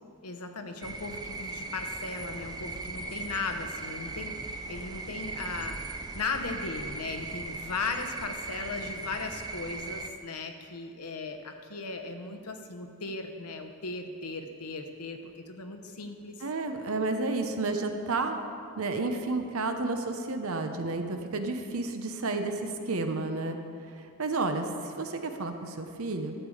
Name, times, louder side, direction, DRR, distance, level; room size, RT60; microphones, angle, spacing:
voice 1, 0.2-16.3, left 3 dB, 85° left, 6 dB, 0.9 m, -37 dB
sound 1, 0.8-10.1, right 3 dB, 20° right, 0.5 m, -38 dB
voice 2, 16.4-18.4 18.8-23.6 24.2-26.3, right 3 dB, 65° right, 6 dB, 0.8 m, -31 dB
12.0 x 7.4 x 4.9 m, 2.4 s
head